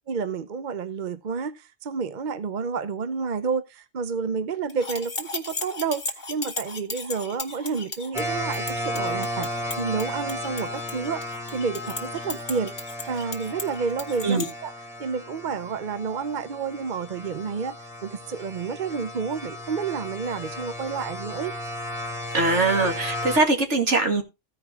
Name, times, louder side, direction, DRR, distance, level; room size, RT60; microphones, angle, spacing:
voice 1, 0.1-11.2 11.5-12.7 13.1-14.7 15.0-17.8 18.0-21.5, right 5 dB, 45° right, 0.7 m, -30 dB
sound 1, 4.7-14.5, left 3 dB, 40° left, 1.7 m, -36 dB
sound 2, 8.1-23.4, left 1 dB, ahead, 1.8 m, -34 dB
voice 2, 22.3-24.2, right 3 dB, 65° right, 2.4 m, -21 dB
15.0 x 5.1 x 4.7 m
omnidirectional pair, 1.3 m